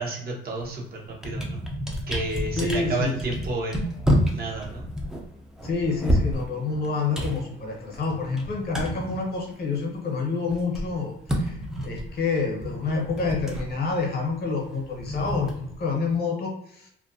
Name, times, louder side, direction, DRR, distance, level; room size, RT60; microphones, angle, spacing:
voice 1, 0.0-1.6 2.1-3.9 4.3-4.9, right 2 dB, 50° right, -1 dB, 0.9 m, -31 dB
sound 1, 0.6-0.8 1.1-10.0 10.2-16.2, equal, 5° right, 0.5 m, -30 dB
voice 2, 2.6-3.3 5.6-16.9, left 4 dB, 50° left, 1 dB, 0.8 m, -28 dB
2.5 x 2.2 x 2.6 m, 0.75 s
cardioid pair, 90°, 20 cm